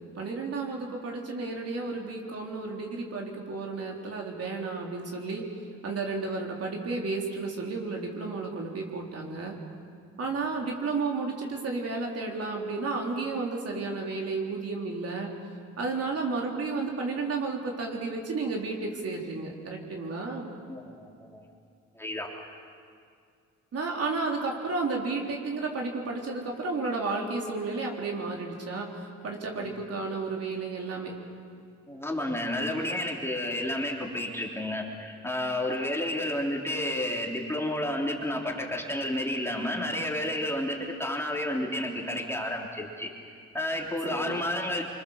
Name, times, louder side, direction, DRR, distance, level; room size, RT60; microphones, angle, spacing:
voice 1, 0.2-5.5 5.8-9.6 10.2-15.3 15.8-20.5 23.7-31.1 44.0-44.4, right 3 dB, 50° right, 0 dB, 3.9 m, -32 dB
voice 2, 20.7-21.4 22.0-22.3 29.6-29.7 31.9-43.1 43.5-44.8, left 1 dB, 10° left, -1 dB, 3.6 m, -31 dB
25.0 x 25.0 x 7.3 m, 2.2 s
cardioid pair, 90°, 30 cm